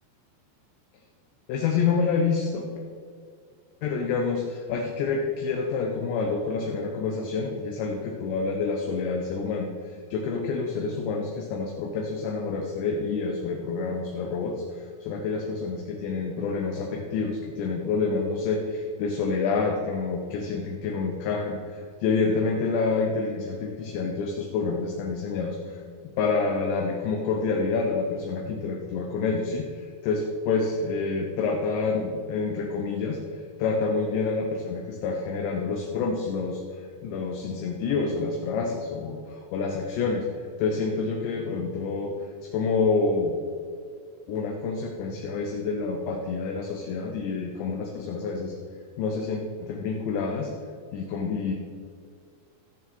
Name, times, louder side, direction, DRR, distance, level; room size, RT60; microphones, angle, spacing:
voice 1, 1.5-2.7 3.8-9.7 10.1-25.8 26.2-33.2 33.6-40.3 40.6-42.1 42.4-43.4 44.3-48.5 49.0-50.5 50.9-51.5, left 4 dB, 75° left, 1 dB, 2.9 m, -28 dB
15.5 x 6.8 x 4.2 m, 2.2 s
omnidirectional pair, 5.6 m